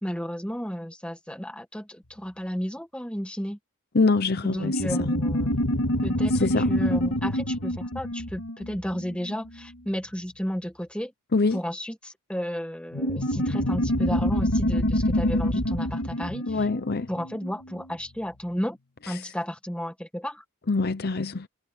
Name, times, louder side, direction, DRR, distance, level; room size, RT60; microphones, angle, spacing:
voice 1, 0.0-3.6 4.4-5.5 6.0-11.1 11.5-16.7 17.1-18.8 19.1-20.4, equal, 5° left, 1.7 m, -33 dB
voice 2, 3.9-4.7 6.4-6.6 11.3-11.6 16.5-17.1 20.7-21.4, left 3 dB, 45° left, 0.7 m, -24 dB
sound 1, 4.6-9.6 12.9-17.8, equal, 80° left, 2.1 m, -26 dB
head